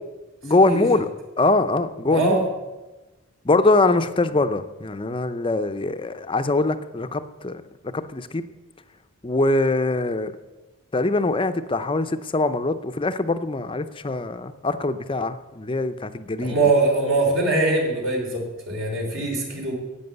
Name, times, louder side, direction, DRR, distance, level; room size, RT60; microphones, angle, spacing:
voice 1, 0.4-1.1 1.4-2.4 3.4-7.6 7.9-8.4 9.2-10.3 10.9-16.5, left 2 dB, 25° left, 10 dB, 0.6 m, -23 dB
voice 2, 2.1-2.4 16.4-19.7, right 2 dB, 60° right, -1 dB, 3.5 m, -22 dB
11.0 x 8.7 x 7.9 m, 1.1 s
head